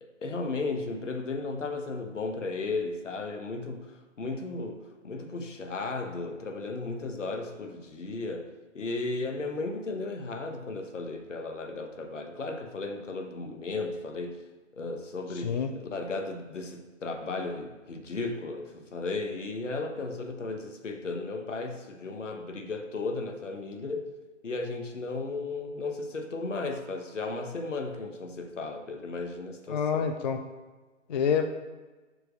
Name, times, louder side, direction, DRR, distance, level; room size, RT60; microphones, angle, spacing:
voice 1, 0.0-14.4 14.7-24.1 24.4-30.1, left 3 dB, 75° left, 4 dB, 1.2 m, -35 dB
voice 2, 29.7-30.4 31.1-31.4, left 7 dB, 40° left, 6 dB, 0.4 m, -27 dB
5.1 x 4.6 x 6.1 m, 1.2 s
figure-of-eight pair, 130°, 37 cm